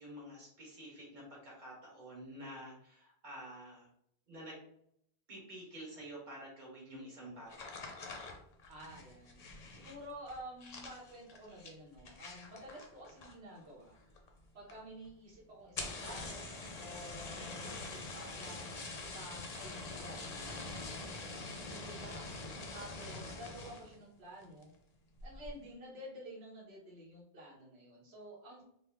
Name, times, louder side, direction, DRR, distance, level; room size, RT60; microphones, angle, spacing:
voice 1, 0.0-3.9 4.3-4.6 5.3-7.8, equal, 50° right, -4 dB, 1.4 m, -49 dB
sound 1, 7.5-13.6 13.9-14.4 14.7-14.8 15.0-15.1 15.6-23.9 24.4-24.8 25.2-25.5, left 3 dB, 50° left, 0.6 m, -45 dB
voice 2, 8.7-9.4 9.7-13.9 14.5-16.5 16.8-18.7 19.0-20.7 21.1-22.3 22.7-24.7 25.2-28.6, equal, 90° right, -3 dB, 1.1 m, -51 dB
3.2 x 2.1 x 3.4 m, 0.70 s
omnidirectional pair, 1.0 m